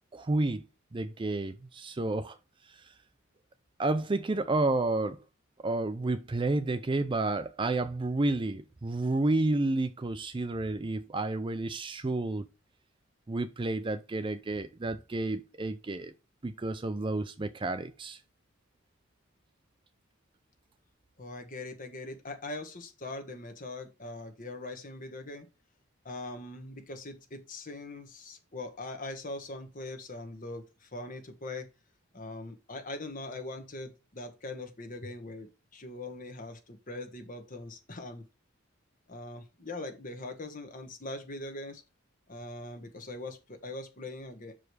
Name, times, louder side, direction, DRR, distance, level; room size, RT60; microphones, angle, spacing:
voice 1, 0.1-0.6 0.9-2.4 3.8-5.2 5.6-12.5 13.3-16.1 16.4-18.2, right 2 dB, 25° right, 0.4 m, -30 dB
voice 2, 21.2-25.5 26.0-31.7 32.1-38.2 39.1-41.8 42.3-44.5, left 2 dB, 40° left, 1.4 m, -41 dB
6.0 x 5.0 x 4.7 m
head